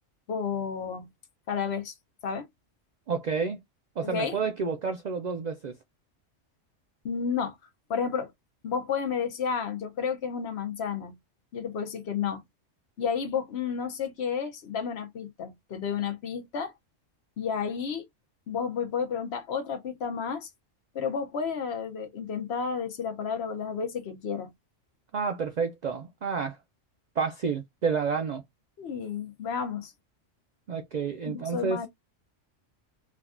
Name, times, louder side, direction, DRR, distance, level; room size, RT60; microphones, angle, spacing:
voice 1, 0.3-1.1 1.5-1.9 2.2-2.5 4.0-4.4 7.0-7.6 7.9-8.3 8.6-11.1 11.5-12.4 13.0-16.7 17.4-18.0 18.5-20.5 20.9-24.5 28.8-29.9 31.3-31.9, left 6 dB, 60° left, 0.9 m, -31 dB
voice 2, 3.1-3.6 4.0-5.7 25.1-26.6 27.2-28.4 30.7-31.8, right 5 dB, 75° right, 0.4 m, -30 dB
3.4 x 2.2 x 2.3 m
omnidirectional pair, 1.3 m